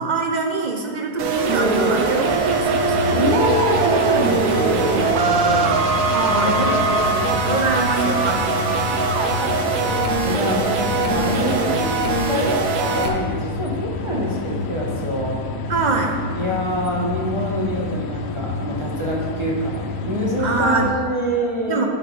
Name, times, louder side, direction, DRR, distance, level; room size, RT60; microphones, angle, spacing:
voice 1, 0.0-3.1 6.1-10.5 15.7-16.2 20.4-21.0 21.7-21.9, right 3 dB, 45° right, 2 dB, 0.5 m, -25 dB
sound 1, 1.2-13.1, right 3 dB, 75° right, 1.2 m, -21 dB
sound 2, 2.2-20.9, left 3 dB, 75° left, 0.6 m, -29 dB
voice 2, 3.0-5.8 6.3-7.6 10.2-15.4 16.3-21.9, equal, 20° right, -4 dB, 1.0 m, -25 dB
10.5 x 5.8 x 3.3 m, 2.3 s
omnidirectional pair, 1.7 m